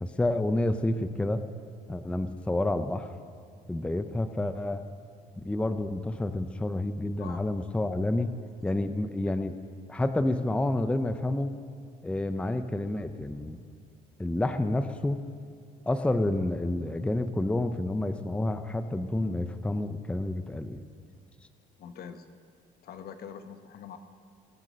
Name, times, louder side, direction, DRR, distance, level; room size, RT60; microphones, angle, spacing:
voice 1, 0.0-1.4 1.9-3.1 3.7-4.8 5.4-8.4 8.6-9.6 9.9-11.6 12.0-13.6 14.2-15.2 15.9-20.8, left 1 dB, 5° left, 9 dB, 0.6 m, -29 dB
voice 2, 21.8-22.3 22.8-24.0, left 7 dB, 65° left, 8 dB, 1.1 m, -43 dB
23.0 x 8.2 x 6.3 m, 2.2 s
cardioid pair, 110°, 17 cm